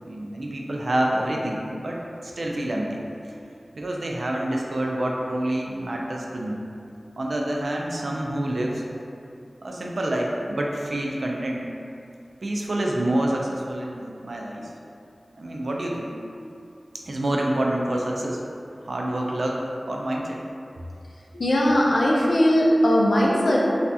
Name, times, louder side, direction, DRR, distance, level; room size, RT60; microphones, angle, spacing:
voice 1, 0.0-3.0 3.7-6.6 7.2-8.8 9.6-11.7 12.4-14.7 15.4-16.1 17.0-18.4 18.8-20.4, right 1 dB, 80° right, -1 dB, 0.3 m, -27 dB
voice 2, 21.3-23.6, equal, 85° left, -4 dB, 0.5 m, -19 dB
3.2 x 2.3 x 2.6 m, 2.6 s
wide cardioid pair, 55°, 0 cm